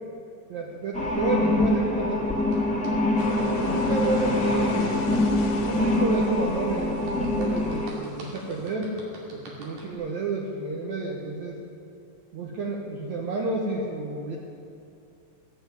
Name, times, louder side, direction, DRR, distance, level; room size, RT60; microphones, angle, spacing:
voice 1, 0.5-2.3 3.4-5.2 5.6-9.0 9.3-11.6 12.3-14.4, right 2 dB, 65° right, -3 dB, 2.4 m, -30 dB
sound 1, 0.9-7.9, left 1 dB, 5° left, 1.5 m, -25 dB
sound 2, 2.5-3.3 7.1-10.0, right 1 dB, 80° right, 4.2 m, -45 dB
sound 3, 3.2-8.7, left 4 dB, 75° left, 2.7 m, -36 dB
17.5 x 7.2 x 9.4 m, 2.6 s
omnidirectional pair, 3.8 m